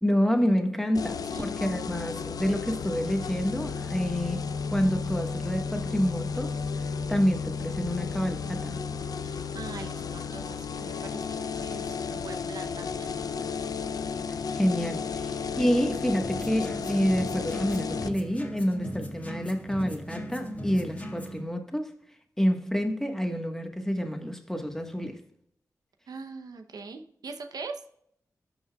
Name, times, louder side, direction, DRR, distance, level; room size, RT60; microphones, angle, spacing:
voice 1, 0.0-6.6 7.1-8.8 14.5-21.9 22.4-25.2, equal, 5° left, 1.3 m, -28 dB
sound 1, 0.9-18.1, left 5 dB, 75° left, 0.5 m, -33 dB
voice 2, 9.2-13.1 26.1-27.8, right 4 dB, 80° right, 0.8 m, -42 dB
sound 2, 16.2-21.4, equal, 25° left, 1.6 m, -38 dB
12.5 x 5.5 x 2.3 m
cardioid pair, 60°, 7 cm